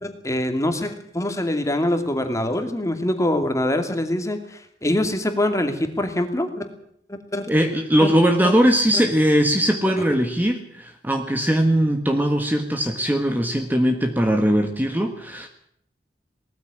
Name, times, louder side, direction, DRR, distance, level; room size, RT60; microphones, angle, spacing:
voice 1, 0.0-4.4 4.8-6.7 7.1-7.5 8.0-8.1 8.4-8.5 8.9-9.0 9.9-10.0, left 1 dB, 15° left, 7 dB, 2.6 m, -24 dB
voice 2, 7.5-15.5, equal, 10° right, 5 dB, 1.6 m, -20 dB
19.5 x 14.0 x 9.9 m, 0.68 s
head